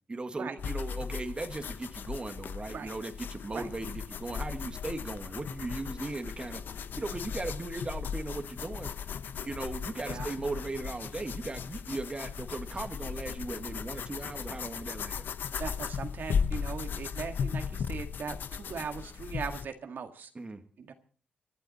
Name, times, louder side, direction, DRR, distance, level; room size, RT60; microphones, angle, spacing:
voice 1, 0.1-6.6 7.0-8.9 9.4-15.2 20.4-20.6, right 2 dB, 30° right, 7 dB, 1.8 m, -37 dB
sound 1, 0.6-19.7, left 6 dB, 70° left, 0.9 m, -37 dB
voice 2, 10.0-10.3 15.6-20.3 20.8-20.9, right 6 dB, 65° right, 6 dB, 1.9 m, -39 dB
25.5 x 11.5 x 4.2 m, 0.43 s
cardioid pair, 90°, 3 cm